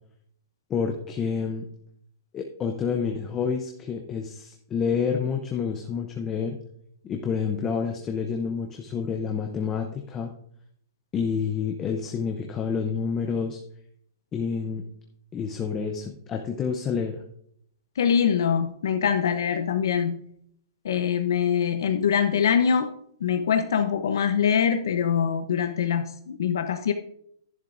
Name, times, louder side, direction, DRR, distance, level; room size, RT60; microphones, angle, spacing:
voice 1, 0.7-1.7 2.3-6.6 7.0-10.3 11.1-13.6 14.3-14.8 15.3-17.2, left 6 dB, 15° left, 3 dB, 0.6 m, -28 dB
voice 2, 18.0-20.2 20.8-22.9 23.2-26.9, left 7 dB, 65° left, 7 dB, 0.7 m, -23 dB
11.5 x 10.5 x 2.5 m, 0.69 s
hypercardioid pair, 175°, 2 cm